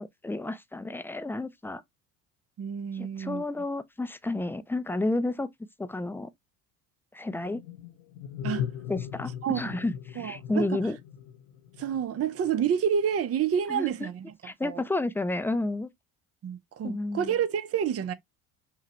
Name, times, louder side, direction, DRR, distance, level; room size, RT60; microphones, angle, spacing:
voice 1, 0.0-1.8 2.9-5.5 5.8-6.3 7.1-7.6 8.9-11.0 13.7-14.1 14.4-15.9 16.8-17.3, left 2 dB, 5° left, 0.4 m, -31 dB
voice 2, 2.6-3.4 8.4-8.7 9.4-9.6 10.2-10.8 11.8-14.3 14.6-14.8 16.4-18.1, right 8 dB, 35° right, 0.7 m, -29 dB
sound 1, 7.3-12.7, left 9 dB, 70° left, 0.7 m, -39 dB
5.7 x 2.2 x 3.0 m
hypercardioid pair, 60°, 43 cm